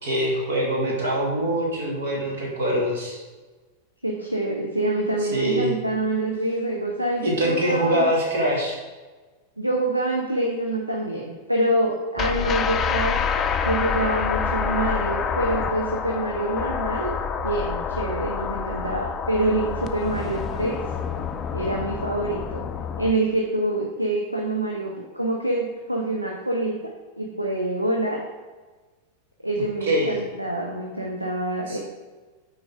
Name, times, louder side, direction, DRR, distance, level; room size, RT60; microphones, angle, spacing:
voice 1, 0.0-3.2 5.2-5.7 7.2-8.8 29.8-30.2 31.7-31.8, right 1 dB, 60° right, -2 dB, 2.1 m, -24 dB
voice 2, 4.0-8.1 9.6-17.1 17.4-20.7 21.5-22.6 23.0-26.7 27.2-28.2 29.4-31.8, right 1 dB, 90° right, -1 dB, 0.8 m, -26 dB
sound 1, 12.2-23.1, left 6 dB, 25° left, 0.5 m, -27 dB
9.5 x 4.9 x 3.6 m, 1.3 s
figure-of-eight pair, 90°, 0 cm